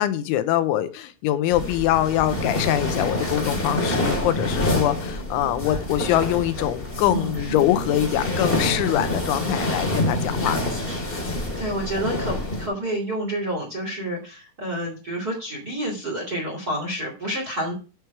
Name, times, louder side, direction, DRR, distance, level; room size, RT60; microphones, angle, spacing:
voice 1, 0.0-10.8, left 13 dB, 85° left, 3.1 m, -23 dB
sound 1, 1.5-12.7, left 1 dB, 30° left, 0.9 m, -27 dB
voice 2, 11.2-17.7, right 1 dB, 30° right, 1.9 m, -29 dB
12.5 x 4.7 x 5.9 m
omnidirectional pair, 5.4 m